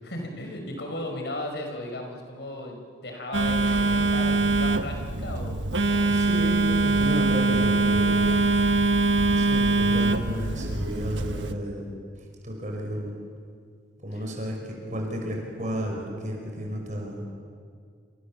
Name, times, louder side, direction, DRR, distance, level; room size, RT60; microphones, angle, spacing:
voice 1, 0.0-6.1 14.1-14.2, left 1 dB, 65° left, 3 dB, 5.0 m, -36 dB
Telephone, 3.3-11.5, right 3 dB, 85° right, 1.4 m, -23 dB
voice 2, 5.8-8.3 9.3-11.9 12.1-13.1 14.0-17.3, equal, 40° right, 1 dB, 5.4 m, -32 dB
28.5 x 26.5 x 7.4 m, 2.2 s
head